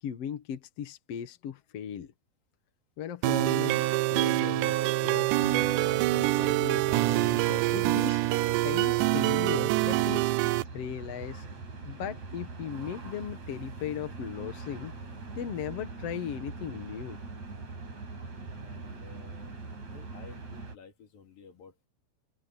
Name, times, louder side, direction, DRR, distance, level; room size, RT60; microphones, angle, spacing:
voice 1, 0.0-2.1 3.0-8.2 8.6-10.3 10.7-11.5 11.9-14.9 15.4-17.2, left 9 dB, 55° left, 1.9 m, -38 dB
sound 1, 3.2-10.6, right 18 dB, 80° right, 1.9 m, -25 dB
sound 2, 5.4-20.8, right 3 dB, 50° right, 6.2 m, -43 dB
voice 2, 18.5-19.5 19.9-21.9, left 5 dB, 70° left, 5.3 m, -53 dB
open air
omnidirectional pair, 4.1 m